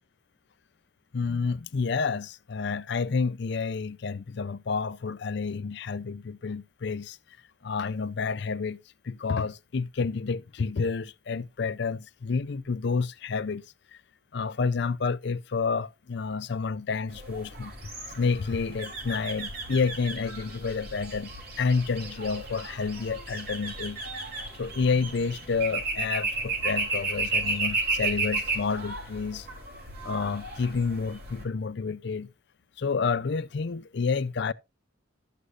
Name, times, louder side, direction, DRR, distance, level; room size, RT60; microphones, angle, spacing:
voice 1, 1.1-7.2 7.6-13.6 14.3-21.3 21.6-24.0 24.6-29.5 30.0-32.3 32.8-34.5, left 4 dB, 55° left, 0.5 m, -29 dB
sound 1, 17.1-31.4, right 3 dB, 50° right, 3.0 m, -34 dB
12.5 x 8.1 x 2.5 m
head